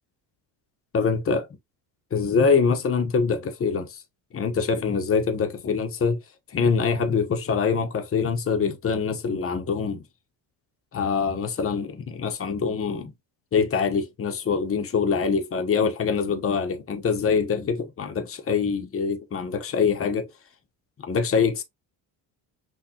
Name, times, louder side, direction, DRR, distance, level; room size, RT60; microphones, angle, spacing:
voice 1, 0.9-1.5 2.1-4.0 4.3-6.2 6.5-10.0 10.9-13.1 13.5-20.3 21.0-21.6, left 5 dB, 30° left, 1.1 m, -24 dB
6.2 x 2.6 x 2.9 m
cardioid pair, 100°, 43 cm